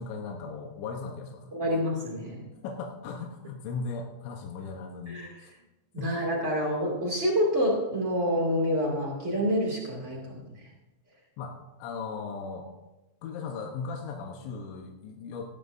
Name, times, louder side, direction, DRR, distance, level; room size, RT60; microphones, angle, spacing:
voice 1, 0.0-1.6 2.6-5.5 6.0-6.1 11.4-12.7 13.2-15.4, left 4 dB, 75° left, 1 dB, 3.0 m, -37 dB
voice 2, 1.5-2.4 5.1-5.3 5.9-10.4, equal, 70° right, -3 dB, 0.7 m, -27 dB
17.5 x 12.5 x 2.6 m, 1.0 s
omnidirectional pair, 5.9 m